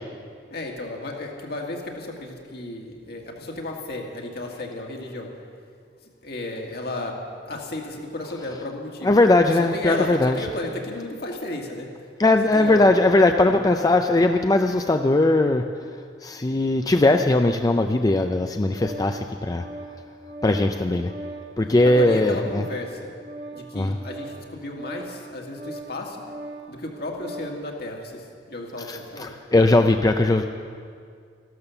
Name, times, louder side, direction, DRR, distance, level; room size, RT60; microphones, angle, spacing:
voice 1, 0.5-5.3 6.2-9.2 9.6-11.9 12.5-12.9 13.5-13.8 21.8-23.1 23.5-26.2 26.7-29.3, left 2 dB, 60° left, 1 dB, 2.0 m, -33 dB
voice 2, 9.0-10.4 12.2-15.6 16.2-19.6 20.4-21.1 21.6-22.7 23.7-24.0 28.8-30.4, left 2 dB, 20° left, 6 dB, 0.4 m, -19 dB
Organ, 18.2-27.6, right 1 dB, 85° right, 2.5 m, -40 dB
14.0 x 12.5 x 7.0 m, 2.2 s
head